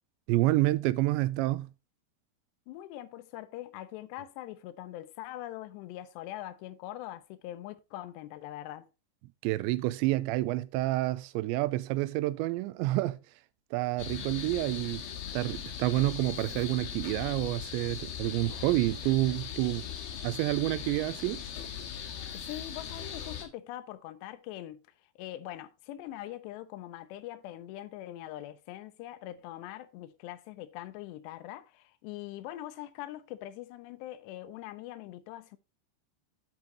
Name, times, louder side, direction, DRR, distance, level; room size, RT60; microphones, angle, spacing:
voice 1, 0.3-1.7 9.4-13.2 13.7-15.0 15.3-19.9 20.2-21.4, right 18 dB, 85° right, 2.8 m, -28 dB
voice 2, 2.7-8.9 22.3-24.8 25.2-35.6, left 14 dB, 80° left, 2.7 m, -42 dB
sound 1, 14.0-23.5, left 8 dB, 65° left, 3.0 m, -39 dB
8.4 x 8.0 x 3.1 m
omnidirectional pair, 5.1 m